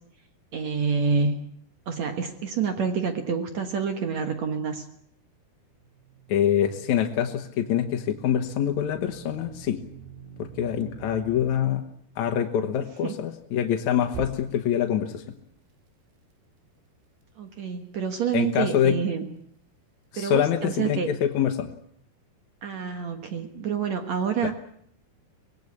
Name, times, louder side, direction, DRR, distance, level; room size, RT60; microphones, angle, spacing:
voice 1, 0.5-1.4 1.9-4.9 13.0-13.1 17.4-19.3 20.2-21.1 22.6-24.5, right 6 dB, 60° right, 6 dB, 2.1 m, -27 dB
sound 1, 5.8-11.6 14.1-14.8, right 6 dB, 80° right, 4.6 m, -44 dB
voice 2, 6.3-9.8 10.4-11.8 12.2-15.4 18.3-19.0 20.1-21.7 24.4-24.5, left 9 dB, 60° left, 4 dB, 2.1 m, -25 dB
25.0 x 19.0 x 8.6 m, 0.69 s
omnidirectional pair, 4.7 m